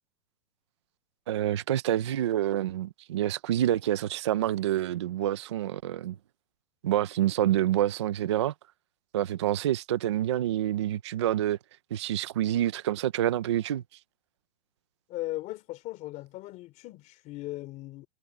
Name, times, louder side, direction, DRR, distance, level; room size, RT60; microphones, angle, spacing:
voice 1, 1.3-6.2 6.8-8.5 9.1-11.6 11.9-13.8, right 12 dB, 30° right, 0.3 m, -27 dB
voice 2, 15.1-18.1, left 17 dB, 25° left, 3.0 m, -38 dB
supercardioid pair, 170°, 32 cm